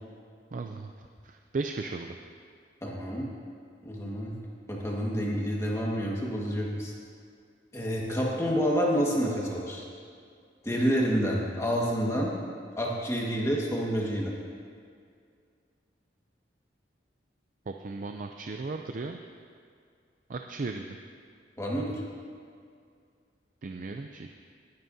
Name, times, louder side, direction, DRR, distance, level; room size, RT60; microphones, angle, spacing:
voice 1, 0.5-0.9 1.2-2.2 17.7-19.2 20.3-21.0 23.6-24.3, right 3 dB, 45° right, 4 dB, 0.4 m, -36 dB
voice 2, 2.8-3.3 3.8-4.3 4.7-6.9 7.7-9.8 10.6-12.3 12.8-14.3 21.6-22.0, equal, 15° left, -3 dB, 1.6 m, -28 dB
19.5 x 9.3 x 2.7 m, 2.3 s
head